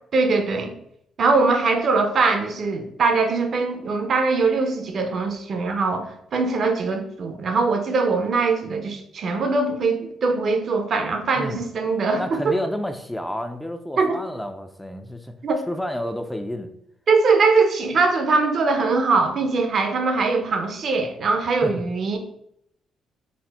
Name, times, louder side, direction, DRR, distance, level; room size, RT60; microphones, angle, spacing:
voice 1, 0.1-0.7 1.2-12.6 14.0-14.2 15.4-15.6 17.1-22.2, right 4 dB, 55° right, 6 dB, 0.6 m, -21 dB
voice 2, 12.2-15.3 15.7-16.7 21.6-21.7, equal, 5° left, 7 dB, 0.4 m, -30 dB
4.1 x 2.1 x 4.1 m, 0.74 s
cardioid pair, 90°, 0 cm